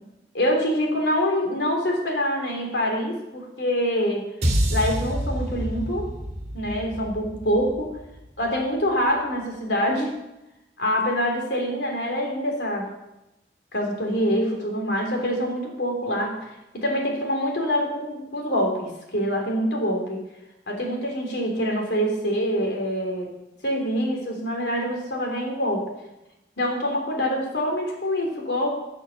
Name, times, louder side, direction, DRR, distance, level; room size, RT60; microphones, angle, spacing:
voice 1, 0.3-4.3 4.7-6.1 6.5-7.9 8.4-10.1 10.8-12.9 13.7-16.4 16.7-20.2 20.7-23.3 23.6-25.9 26.6-28.7, equal, 80° left, 1 dB, 3.2 m, -25 dB
sound 1, 4.4-8.8, equal, 35° right, 2.5 m, -28 dB
12.0 x 6.5 x 7.4 m, 0.93 s
head